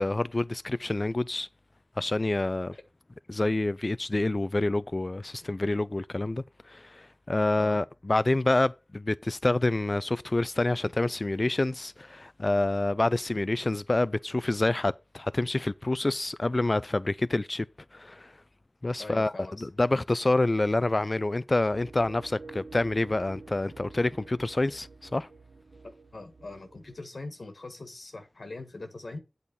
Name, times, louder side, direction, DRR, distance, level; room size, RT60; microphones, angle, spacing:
voice 1, 0.0-1.5 2.0-2.7 3.3-17.6 17.9-18.3 18.8-19.3 19.6-25.3, left 2 dB, 45° left, 0.4 m, -27 dB
voice 2, 19.0-19.7 26.1-29.2, left 2 dB, 75° left, 1.6 m, -42 dB
sound 1, 21.7-27.0, right 3 dB, 85° right, 1.0 m, -49 dB
8.5 x 4.0 x 6.9 m
wide cardioid pair, 50°, 0 cm